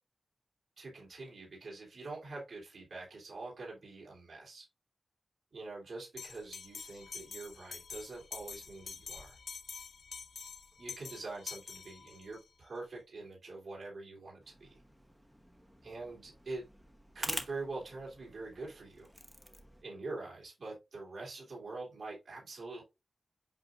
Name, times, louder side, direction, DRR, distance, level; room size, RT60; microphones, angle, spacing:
voice 1, 0.8-4.6 5.5-9.4 10.8-14.8 15.8-16.6 17.1-19.1 19.8-22.8, right 3 dB, 75° right, 3.3 m, -45 dB
Bell, 6.2-12.4, left 5 dB, 90° left, 0.8 m, -47 dB
sound 1, 14.4-19.8, equal, 5° right, 1.0 m, -46 dB
8.1 x 5.5 x 2.5 m
wide cardioid pair, 140°, 0 cm